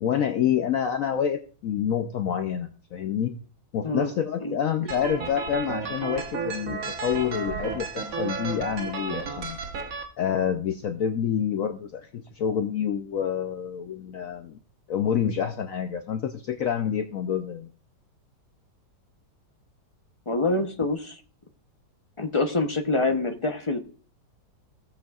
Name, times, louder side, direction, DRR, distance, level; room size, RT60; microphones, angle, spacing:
voice 1, 0.0-3.3 3.7-9.6 10.2-14.6 14.9-17.7, left 8 dB, 65° left, 7 dB, 0.9 m, -27 dB
sound 1, 4.9-10.0, right 4 dB, 55° right, 1.5 m, -33 dB
voice 2, 20.3-21.2 22.2-23.8, left 2 dB, 45° left, 5 dB, 0.4 m, -26 dB
16.5 x 8.3 x 2.4 m, 0.41 s
omnidirectional pair, 1.9 m